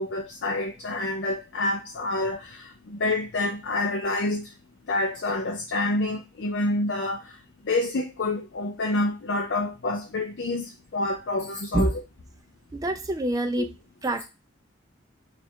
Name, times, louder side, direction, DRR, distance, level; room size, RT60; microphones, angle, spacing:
voice 1, 0.0-4.5 4.9-7.3 7.7-11.9 13.6-13.7, left 2 dB, 55° left, 0.5 m, -28 dB
voice 2, 12.7-13.7 14.0-14.2, right 1 dB, 20° right, 0.4 m, -26 dB
3.3 x 2.4 x 4.3 m
head